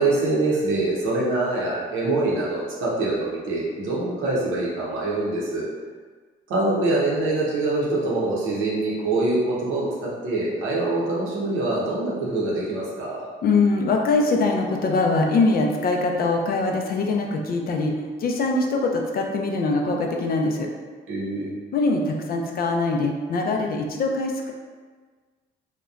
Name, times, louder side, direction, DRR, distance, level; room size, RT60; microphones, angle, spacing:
voice 1, 0.0-5.6 6.5-13.2 21.1-21.5, right 2 dB, 90° right, -6 dB, 0.8 m, -24 dB
voice 2, 13.4-17.9 18.2-20.7 21.7-24.5, left 3 dB, 50° left, 2 dB, 0.4 m, -22 dB
2.8 x 2.1 x 2.4 m, 1.5 s
cardioid pair, 90°, 20 cm